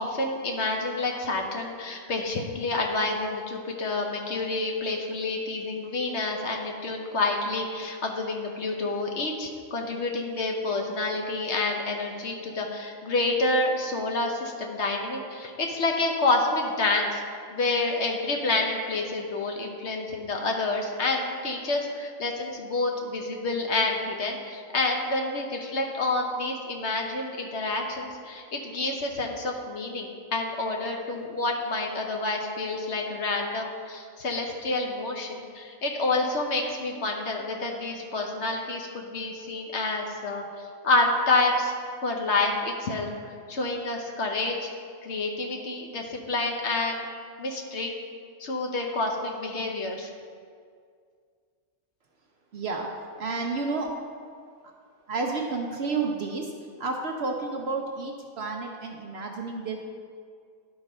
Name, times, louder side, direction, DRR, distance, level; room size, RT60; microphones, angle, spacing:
voice 1, 0.0-17.2 17.5-40.4 40.8-41.7 42.0-43.1 43.5-44.7 45.0-47.1 47.4-47.9 48.4-50.1, left 2 dB, 55° left, 1 dB, 1.0 m, -28 dB
voice 2, 52.5-52.9 53.2-54.0 55.1-56.5 56.8-59.8, right 3 dB, 55° right, 1 dB, 0.8 m, -30 dB
11.5 x 4.0 x 5.3 m, 2.1 s
omnidirectional pair, 1.5 m